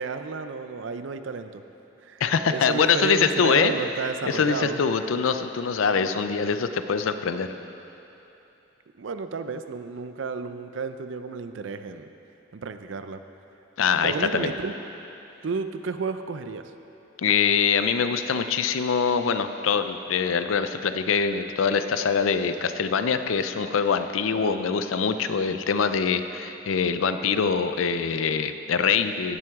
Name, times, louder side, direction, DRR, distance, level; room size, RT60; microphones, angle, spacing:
voice 1, 0.0-1.6 2.0-4.8 9.0-12.1 12.5-13.2 14.0-14.7 15.4-16.7, right 4 dB, 65° right, 9 dB, 0.5 m, -32 dB
voice 2, 2.2-3.7 4.2-7.5 13.8-14.5 17.2-29.4, left 6 dB, 80° left, 10 dB, 0.5 m, -24 dB
16.5 x 7.6 x 3.6 m, 3.0 s
head